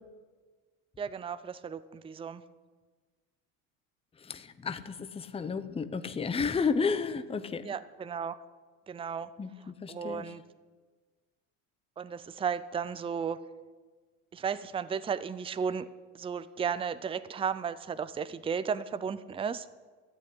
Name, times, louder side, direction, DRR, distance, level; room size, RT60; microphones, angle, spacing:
voice 1, 1.0-2.4 7.6-8.4 8.9-9.3 9.6-10.4 12.0-13.4 14.3-15.9 16.1-19.7, right 6 dB, 15° right, 14 dB, 0.6 m, -34 dB
voice 2, 4.2-7.7 9.4-9.5 9.8-10.2, left 5 dB, 15° left, 11 dB, 0.8 m, -32 dB
14.0 x 8.4 x 9.9 m, 1.4 s
supercardioid pair, 105°, 37 cm